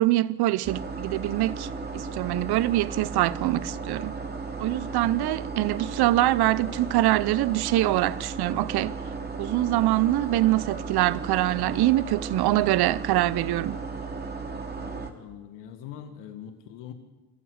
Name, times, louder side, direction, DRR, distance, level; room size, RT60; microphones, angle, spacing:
voice 1, 0.0-4.1 4.6-8.9 9.4-13.8, right 16 dB, 65° right, 0.8 m, -24 dB
sound 1, 0.6-15.1, right 4 dB, 25° right, 3.1 m, -35 dB
voice 2, 14.8-16.9, left 9 dB, 80° left, 1.9 m, -43 dB
25.5 x 14.0 x 8.1 m
supercardioid pair, 65°, 41 cm